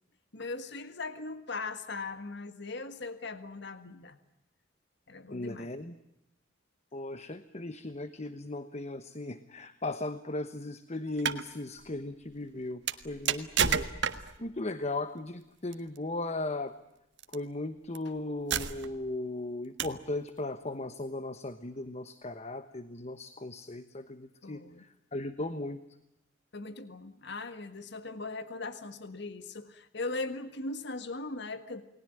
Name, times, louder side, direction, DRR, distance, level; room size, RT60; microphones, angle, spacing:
voice 1, 0.3-4.2 5.1-5.7 24.4-24.8 26.5-31.8, left 3 dB, 60° left, 11 dB, 1.6 m, -39 dB
voice 2, 5.3-5.9 6.9-13.8 14.4-16.7 17.3-25.8, left 2 dB, 35° left, 11 dB, 1.1 m, -37 dB
sound 1, 11.1-11.4 12.9-14.4 15.7-16.0 17.2-17.3 17.9-18.0 18.5-19.1 19.8-20.1, right 7 dB, 60° right, 1.6 m, -30 dB
29.5 x 20.5 x 9.1 m, 0.87 s
head